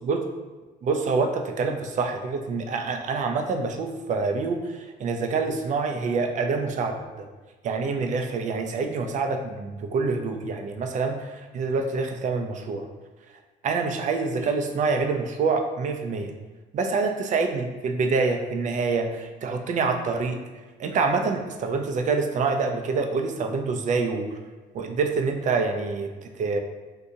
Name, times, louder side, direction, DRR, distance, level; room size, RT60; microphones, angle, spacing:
voice 1, 0.8-7.3 7.6-12.9 13.6-16.3 16.7-20.4 20.8-24.4 24.7-26.6, right 4 dB, 45° right, 5 dB, 0.5 m, -26 dB
3.6 x 2.7 x 2.7 m, 1.3 s
cardioid pair, 110°, 17 cm